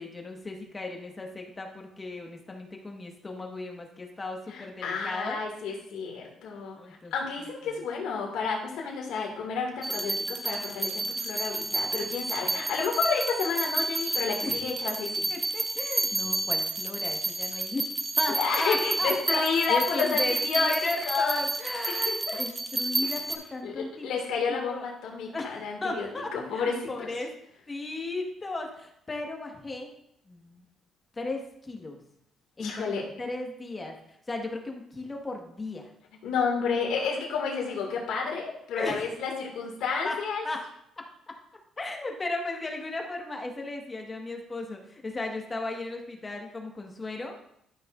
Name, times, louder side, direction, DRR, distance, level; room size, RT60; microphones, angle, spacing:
voice 1, 0.0-5.4 6.5-7.1 7.4-7.8 14.4-14.6 15.3-17.8 18.2-19.4 19.7-24.2 24.7-24.9 25.3-27.3 27.7-29.9 30.3-30.7 31.1-32.0 32.6-32.9 33.2-35.9 38.7-39.1 40.0-40.2 40.4-40.7 41.0-41.1 41.8-47.3, left 2 dB, 25° left, 2 dB, 1.5 m, -36 dB
voice 2, 4.5-6.8 7.1-15.3 18.3-20.7 21.1-21.4 21.9-22.4 23.0-23.1 23.6-27.1 32.6-33.0 36.2-40.4, left 5 dB, 85° left, -1 dB, 2.1 m, -30 dB
sound 1, 9.8-23.4, right 2 dB, 25° right, 1.1 m, -30 dB
12.0 x 6.0 x 2.5 m, 0.75 s
cardioid pair, 90°, 0 cm